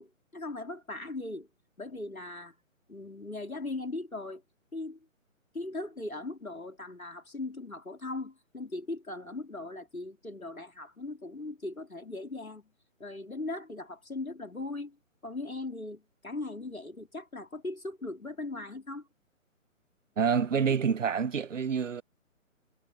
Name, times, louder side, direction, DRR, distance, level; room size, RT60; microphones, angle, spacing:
voice 1, 0.0-1.5 1.8-2.5 2.9-4.4 4.7-5.0 5.5-12.7 13.0-15.0 15.2-19.1 20.5-20.7, left 2 dB, 90° left, 3.3 m, -39 dB
voice 2, 20.2-22.0, right 6 dB, 65° right, 1.0 m, -27 dB
figure-of-eight pair, 140°, 41 cm